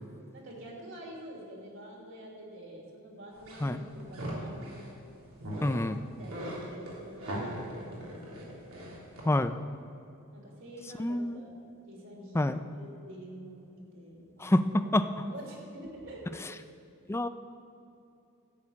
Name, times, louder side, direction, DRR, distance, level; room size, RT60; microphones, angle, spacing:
voice 1, 0.3-4.9 5.5-5.8 6.2-8.6 10.3-12.4 12.7-16.4, right 1 dB, 60° right, -2 dB, 3.2 m, -47 dB
sound 1, 3.3-4.9 5.4-5.8 6.1-9.2, equal, 80° right, 3.3 m, -39 dB
voice 2, 5.6-6.0 9.3-9.5 11.0-11.4 12.3-12.6 14.4-15.0 17.1-17.3, left 1 dB, 10° left, 11 dB, 0.4 m, -27 dB
13.5 x 6.6 x 8.6 m, 2.7 s
head